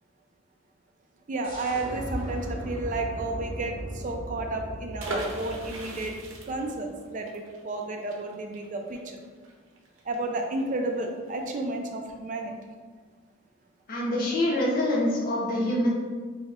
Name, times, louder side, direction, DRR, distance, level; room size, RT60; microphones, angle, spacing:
voice 1, 1.3-6.1 6.5-9.0 10.1-12.5, right 2 dB, 40° right, 3 dB, 0.4 m, -32 dB
sound 1, 1.4-6.9, right 1 dB, 25° left, 1.2 m, -38 dB
sound 2, 5.0-10.6 10.9-11.0 11.3-11.6, right 1 dB, 80° right, 0.7 m, -39 dB
voice 2, 13.9-15.9, left 1 dB, 45° left, -4 dB, 0.7 m, -25 dB
3.3 x 2.8 x 3.6 m, 1.5 s
head